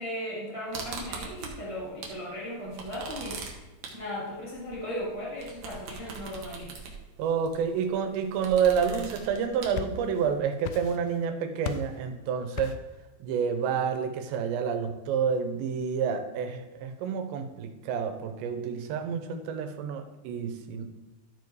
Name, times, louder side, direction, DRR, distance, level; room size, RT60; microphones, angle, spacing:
voice 1, 0.0-3.6 3.9-6.7, equal, 20° right, -6 dB, 0.8 m, -37 dB
sound 1, 0.7-2.2 2.5-10.4, right 4 dB, 65° right, 1.8 m, -42 dB
voice 2, 7.2-12.8 13.2-20.8, right 7 dB, 85° right, 7 dB, 3.1 m, -29 dB
sound 2, 9.4-10.3 10.6-11.2 11.6-12.0 12.6-13.0, left 9 dB, 90° left, 2.9 m, -37 dB
12.5 x 4.8 x 4.7 m, 1.1 s
omnidirectional pair, 5.0 m